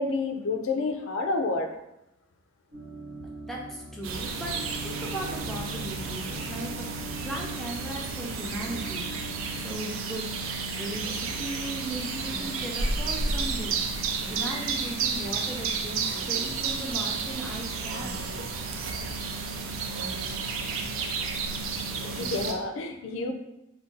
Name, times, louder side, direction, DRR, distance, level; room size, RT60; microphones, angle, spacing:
voice 1, 0.0-1.7 22.0-23.3, left 3 dB, 85° left, 5 dB, 0.4 m, -29 dB
sound 1, 2.7-9.8, right 2 dB, 50° right, 0.8 m, -42 dB
voice 2, 3.4-4.6 4.8-9.3 9.6-10.3 10.6-13.8 14.3-18.1, right 1 dB, ahead, -2 dB, 0.4 m, -37 dB
sound 2, 4.0-22.5, right 4 dB, 85° right, 0.4 m, -32 dB
2.5 x 2.2 x 3.7 m, 0.89 s
head